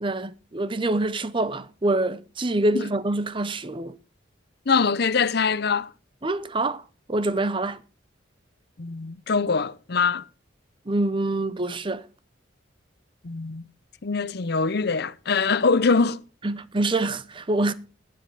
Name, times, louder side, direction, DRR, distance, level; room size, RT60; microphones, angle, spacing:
voice 1, 0.0-4.0 6.2-6.8 7.1-7.8 10.9-12.0 16.4-17.7, right 2 dB, 25° right, 0.7 m, -25 dB
voice 2, 4.7-5.9 8.8-10.2 13.2-13.6 14.0-16.2, left 4 dB, 55° left, 0.7 m, -23 dB
11.0 x 10.5 x 5.5 m
head